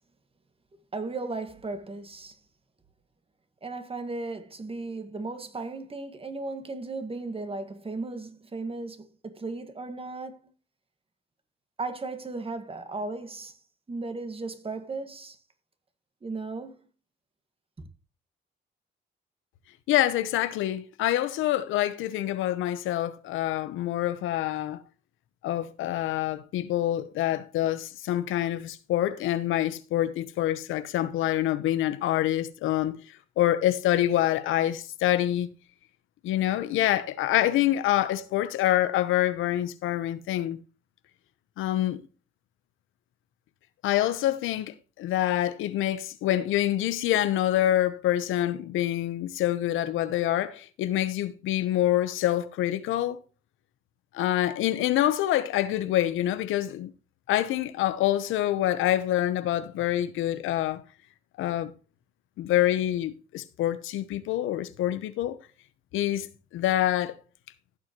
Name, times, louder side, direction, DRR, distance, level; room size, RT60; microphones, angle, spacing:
voice 1, 0.9-2.4 3.6-10.5 11.8-13.6 13.9-15.4 16.2-16.8, right 3 dB, 30° right, 1.8 m, -36 dB
voice 2, 19.9-24.8 25.4-33.0 33.4-35.5 36.2-40.6 41.6-42.0 43.8-53.2 54.1-56.9 57.3-60.8 61.4-61.7 62.4-65.4 65.9-67.2, left 13 dB, 90° left, 0.9 m, -26 dB
15.5 x 6.4 x 3.0 m
cardioid pair, 90°, 20 cm